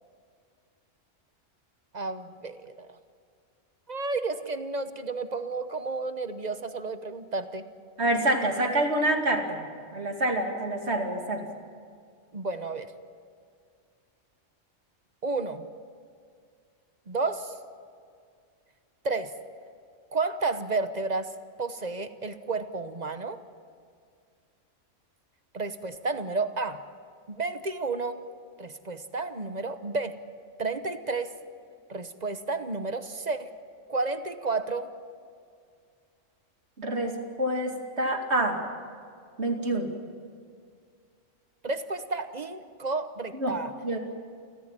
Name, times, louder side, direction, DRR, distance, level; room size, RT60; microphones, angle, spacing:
voice 1, 1.9-3.0 3.9-7.6 12.3-12.9 15.2-15.7 17.1-17.5 19.0-19.3 20.1-21.3 21.6-23.4 25.5-26.8 27.3-28.2 28.6-30.2 30.6-31.3 31.9-33.5 33.9-34.9 41.6-43.7, right 3 dB, 35° right, 10 dB, 1.1 m, -31 dB
voice 2, 8.0-11.5 36.8-38.6 39.4-39.9 43.3-43.6 43.8-44.0, right 1 dB, 60° right, 3 dB, 2.7 m, -27 dB
28.5 x 15.5 x 8.9 m, 2.2 s
omnidirectional pair, 1.3 m